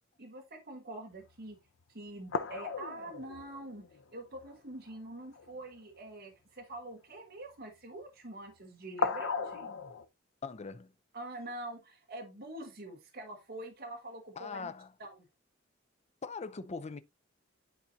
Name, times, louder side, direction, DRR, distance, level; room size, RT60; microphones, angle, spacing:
voice 1, 0.2-1.6 1.9-9.7 11.1-14.7 15.0-15.2, right 1 dB, 50° right, 1.4 m, -45 dB
sound 1, 1.2-1.3 1.8-1.9 2.3-4.6 4.9-5.0 5.3-5.5 9.0-10.0, left 5 dB, 65° left, 0.7 m, -36 dB
voice 2, 10.4-10.9 14.4-14.9 16.2-17.0, left 4 dB, 35° left, 0.5 m, -41 dB
10.5 x 4.2 x 2.7 m
head